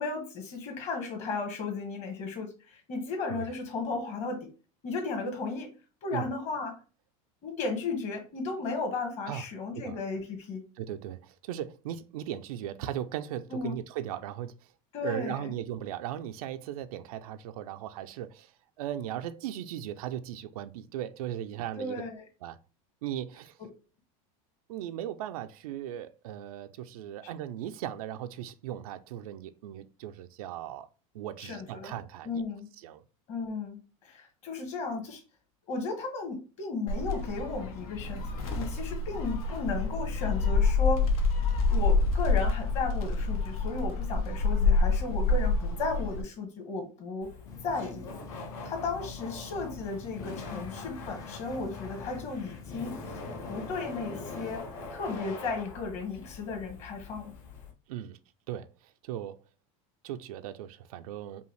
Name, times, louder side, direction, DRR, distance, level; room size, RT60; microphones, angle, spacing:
voice 1, 0.0-4.5 4.8-5.7 6.0-6.7 7.4-10.6 13.5-13.8 14.9-15.5 21.8-22.2 23.6-23.7 31.4-32.0 32.2-32.7 33.3-35.2 35.7-38.2 38.5-41.1 41.7-47.3 47.6-48.1 48.6-53.2 53.5-57.3, left 3 dB, 40° left, 1.5 m, -35 dB
voice 2, 10.8-14.6 15.0-22.0 22.4-22.6 23.0-23.6 24.7-30.9 31.1-32.4 32.8-33.0 57.9-58.2 58.5-59.4 60.0-61.4, right 11 dB, 90° right, 0.4 m, -37 dB
Gull seagull, 36.9-46.2, left 4 dB, 85° left, 1.1 m, -27 dB
Laughter, 47.2-57.7, left 3 dB, 55° left, 1.8 m, -43 dB
sound 1, 47.5-54.6, left 4 dB, 20° left, 0.4 m, -47 dB
5.4 x 2.4 x 3.2 m
supercardioid pair, 145°, 18 cm